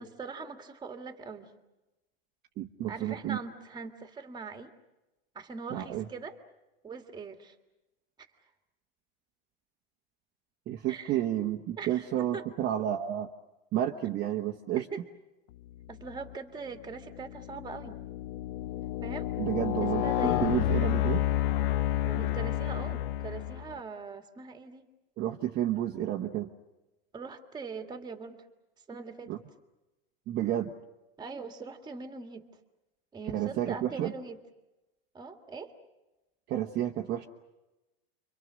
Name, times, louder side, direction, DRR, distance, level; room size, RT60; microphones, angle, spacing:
voice 1, 0.0-1.5 2.9-4.7 5.3-6.4 6.8-7.6 8.2-8.3 10.9-11.2 11.8-12.4 14.8-15.0 15.9-18.0 19.0-19.3 19.8-20.6 22.0-24.9 27.1-28.4 28.9-29.3 31.2-32.5 33.1-34.4 35.1-35.7, right 4 dB, 15° right, 6 dB, 2.1 m, -41 dB
voice 2, 2.6-3.4 5.7-6.0 10.7-13.3 13.7-14.8 19.4-20.0 20.4-21.3 25.2-26.5 29.3-29.4 30.3-30.7 33.3-34.1 36.5-37.2, right 12 dB, 35° right, 1 dB, 1.2 m, -31 dB
sound 1, 16.0-16.3 16.9-23.8, left 13 dB, 60° left, 0.9 m, -30 dB
30.0 x 24.5 x 6.4 m, 1.0 s
supercardioid pair, 140°, 30 cm